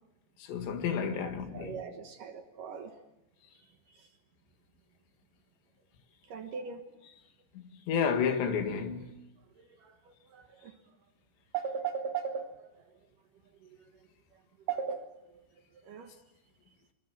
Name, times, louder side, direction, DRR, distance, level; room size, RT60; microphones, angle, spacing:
voice 1, 0.5-1.8 7.9-9.2, left 6 dB, 80° left, 4.2 m, -30 dB
voice 2, 1.2-2.9 3.9-4.1 6.3-6.8 9.8-10.7 11.5-12.6 13.6-13.8 14.7-15.4 15.8-16.1, right 7 dB, 65° right, 2.4 m, -38 dB
25.0 x 25.0 x 7.5 m
omnidirectional pair, 5.0 m